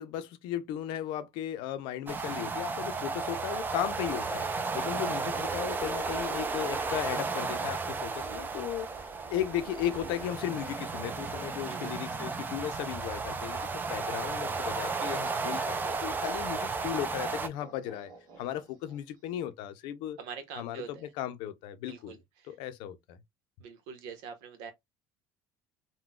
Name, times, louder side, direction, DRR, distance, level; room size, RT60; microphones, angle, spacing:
voice 1, 0.0-18.1 18.4-20.2 20.6-20.8 21.2-22.1 22.5-23.2, left 11 dB, 75° left, 0.6 m, -36 dB
sound 1, 2.1-17.5, right 4 dB, 25° right, 0.5 m, -34 dB
sound 2, 3.4-12.1 12.4-19.2, right 5 dB, 60° right, 1.1 m, -54 dB
voice 2, 20.2-21.1 21.9-22.6 23.6-24.7, right 6 dB, 90° right, 0.9 m, -44 dB
3.7 x 2.2 x 2.3 m
cardioid pair, 115°, 8 cm